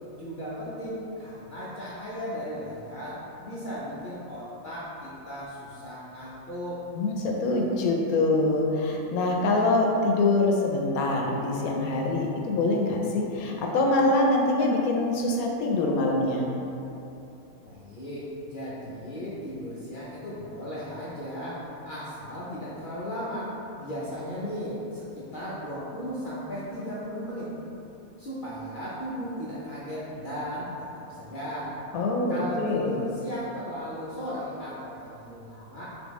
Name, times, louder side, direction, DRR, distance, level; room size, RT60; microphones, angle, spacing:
voice 1, 0.2-6.8 17.6-23.5 23.8-27.5 28.2-30.7 31.0-31.8 32.3-35.8, equal, 60° left, -8 dB, 0.5 m, -36 dB
voice 2, 6.9-16.4 31.9-32.9, left 2 dB, 75° left, 0 dB, 1.0 m, -24 dB
3.7 x 3.6 x 3.0 m, 2.9 s
omnidirectional pair, 1.6 m